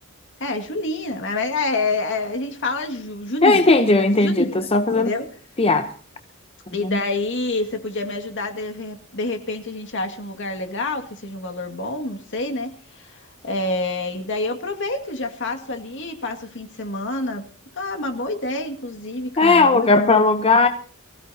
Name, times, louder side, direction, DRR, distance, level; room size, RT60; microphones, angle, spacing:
voice 1, 0.4-5.3 6.7-17.4 17.7-20.3, left 2 dB, 60° left, 2.1 m, -28 dB
voice 2, 3.4-5.1 5.6-5.9 6.9-7.0 19.4-20.7, left 3 dB, 25° left, 0.8 m, -17 dB
23.0 x 15.5 x 2.8 m
head